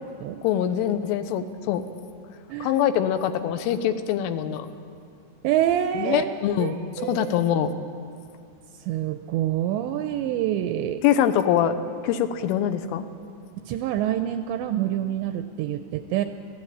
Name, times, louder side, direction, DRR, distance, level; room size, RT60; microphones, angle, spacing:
voice 1, 0.4-1.8 2.6-4.7 6.0-7.7 11.0-11.7 12.0-13.1, left 10 dB, 80° left, 9 dB, 3.4 m, -24 dB
voice 2, 5.4-7.3 8.8-11.0 13.7-16.2, right 11 dB, 85° right, 8 dB, 2.6 m, -26 dB
24.5 x 17.0 x 8.7 m, 2.5 s
omnidirectional pair, 5.8 m